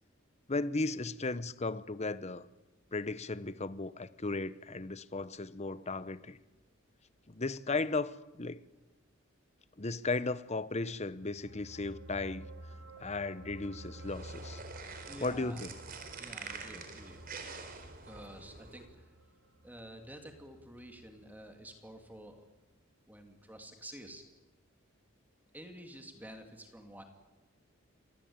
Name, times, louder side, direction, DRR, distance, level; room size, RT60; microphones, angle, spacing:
voice 1, 0.5-2.5 2.9-6.4 7.3-8.6 9.8-12.5 13.0-14.6 15.2-15.7, left 3 dB, 35° left, 1.0 m, -35 dB
sound 1, 11.0-21.7 22.0-22.2, right 1 dB, 70° right, 2.2 m, -52 dB
sound 2, 13.8-18.9, right 4 dB, 45° right, 3.9 m, -46 dB
voice 2, 15.1-15.6 16.2-17.2 18.0-19.1 19.6-22.5 23.1-24.2 25.5-27.0, right 1 dB, 10° right, 2.9 m, -50 dB
28.0 x 21.0 x 8.9 m
head